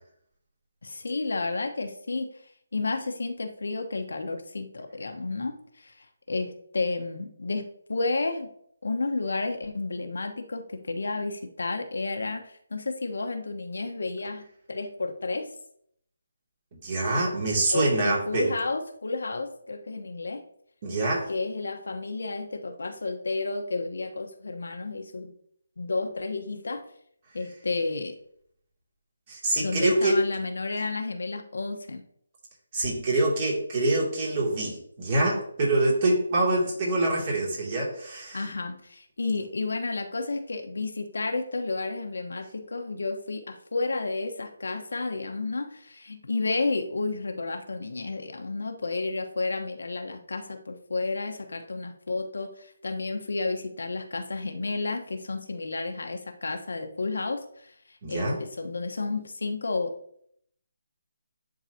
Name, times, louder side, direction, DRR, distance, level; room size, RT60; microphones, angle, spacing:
voice 1, 0.8-2.3 2.7-8.5 8.8-15.5 17.7-20.4 21.3-25.3 25.8-26.8 27.3-28.2 29.6-32.0 38.3-59.9, left 3 dB, 75° left, 6 dB, 1.1 m, -31 dB
voice 2, 16.8-18.5 20.8-21.3 29.3-30.2 32.7-38.4 58.0-58.4, right 2 dB, 35° right, -3 dB, 2.5 m, -25 dB
10.5 x 4.0 x 2.8 m, 0.67 s
figure-of-eight pair, 160°, 0 cm